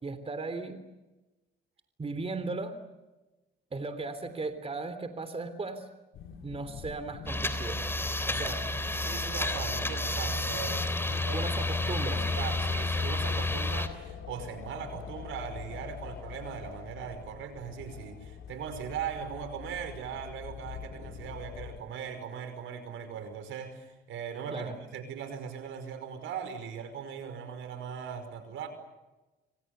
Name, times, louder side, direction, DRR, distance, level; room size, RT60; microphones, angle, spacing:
voice 1, 0.0-0.8 2.0-2.8 3.7-5.9 6.4-7.8 8.3-8.6 11.3-12.2 24.5-24.8, right 3 dB, 30° right, 10 dB, 3.4 m, -36 dB
sound 1, 6.1-21.8, left 7 dB, 80° left, 3.9 m, -45 dB
sound 2, 7.3-13.9, left 2 dB, 10° left, 3.3 m, -30 dB
voice 2, 9.0-28.7, right 7 dB, 85° right, 9 dB, 5.5 m, -39 dB
29.0 x 26.5 x 6.9 m, 1.1 s
cardioid pair, 90°, 20 cm